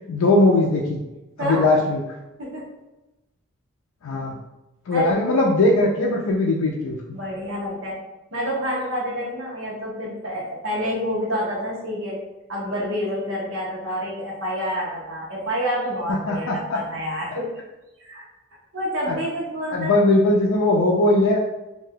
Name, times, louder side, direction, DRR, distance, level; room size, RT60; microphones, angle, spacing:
voice 1, 0.1-1.0 1.4-2.0 4.0-4.3 4.9-7.0 16.3-16.8 19.1-19.2 19.7-21.4, left 2 dB, 75° left, -3 dB, 0.4 m, -19 dB
voice 2, 1.4-1.7 2.4-2.7 4.9-5.1 7.1-8.0 8.3-12.2 12.5-17.5 18.0-18.2 18.7-20.0, equal, 60° right, -4 dB, 0.9 m, -28 dB
2.6 x 2.2 x 3.4 m, 1.0 s
head